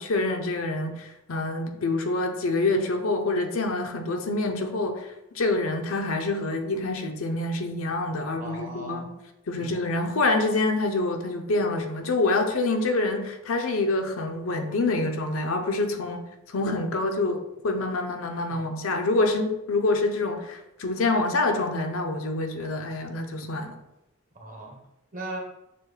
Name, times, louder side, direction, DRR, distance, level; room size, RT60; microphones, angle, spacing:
voice 1, 0.0-9.1 9.5-23.8, left 2 dB, 70° left, 4 dB, 0.6 m, -26 dB
voice 2, 8.3-9.1 9.5-9.7 18.5-18.6 24.4-24.8 25.1-25.4, right 2 dB, 35° right, 1 dB, 0.8 m, -38 dB
6.7 x 2.2 x 3.2 m, 0.92 s
head